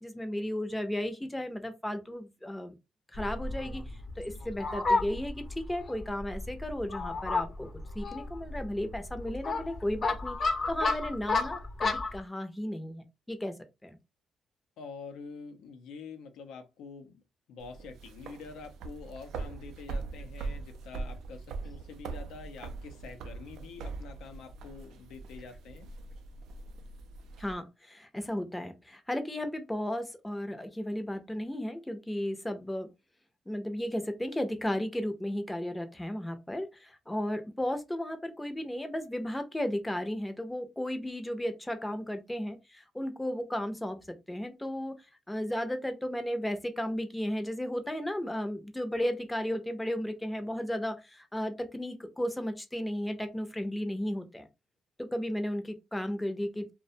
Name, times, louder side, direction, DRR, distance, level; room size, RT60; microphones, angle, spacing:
voice 1, 0.0-2.7 3.1-3.8 4.2-7.7 8.0-10.4 10.7-13.5 13.8-14.0 27.4-32.9 33.5-45.0 45.3-54.5 55.0-56.7, left 1 dB, 10° left, 0.5 m, -34 dB
Fowl, 3.1-12.2, left 3 dB, 50° left, 0.6 m, -33 dB
voice 2, 14.8-17.2 17.5-25.9, left 5 dB, 85° left, 0.5 m, -46 dB
sound 1, 17.6-27.5, right 3 dB, 80° right, 0.3 m, -42 dB
2.4 x 2.1 x 2.6 m
cardioid pair, 90°, 0 cm